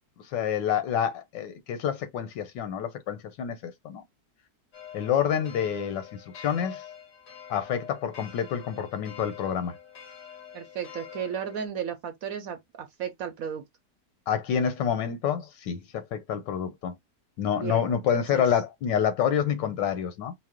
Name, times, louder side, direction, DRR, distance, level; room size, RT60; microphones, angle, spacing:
voice 1, 0.3-4.0 4.9-6.1 6.3-6.8 7.5-9.8 14.3-16.9 17.4-20.3, left 8 dB, 85° left, 1.5 m, -28 dB
sound 1, 4.7-11.7, left 9 dB, 65° left, 2.0 m, -45 dB
voice 2, 10.5-13.6 17.5-18.5, right 8 dB, 65° right, 0.9 m, -34 dB
4.7 x 2.1 x 3.6 m
omnidirectional pair, 1.9 m